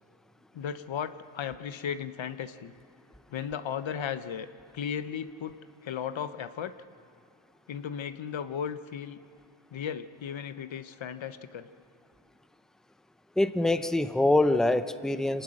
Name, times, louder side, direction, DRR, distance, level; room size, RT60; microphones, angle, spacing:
voice 1, 0.5-2.7 3.3-4.5 4.7-5.6 5.8-6.7 7.7-9.2 9.7-11.7, left 8 dB, 70° left, 11 dB, 0.9 m, -35 dB
voice 2, 13.4-15.4, left 2 dB, ahead, 11 dB, 0.8 m, -24 dB
25.0 x 18.5 x 6.4 m, 2.5 s
cardioid pair, 55°, 48 cm